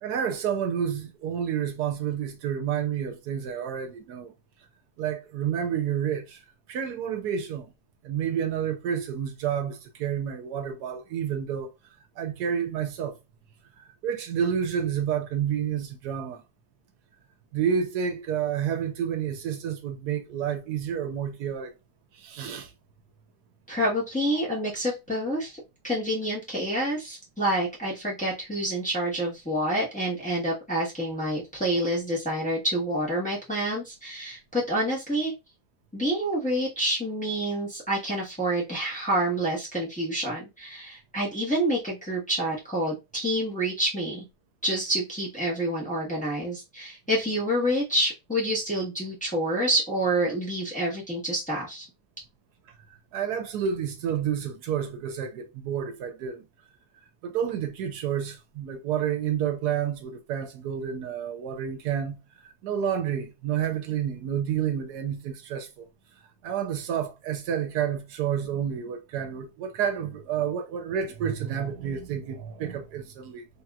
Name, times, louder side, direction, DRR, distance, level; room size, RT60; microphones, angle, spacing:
voice 1, 0.0-4.3 5.0-6.4 6.7-7.7 8.0-11.7 12.2-13.1 13.8-16.4 17.5-21.7 22.1-22.7 53.1-56.4 57.2-62.2 62.6-65.9 66.4-73.5, right 8 dB, 85° right, 1.2 m, -29 dB
voice 2, 23.7-35.3 35.9-44.2 44.6-51.9, right 1 dB, 5° left, 1.1 m, -28 dB
3.3 x 2.9 x 2.3 m
omnidirectional pair, 1.7 m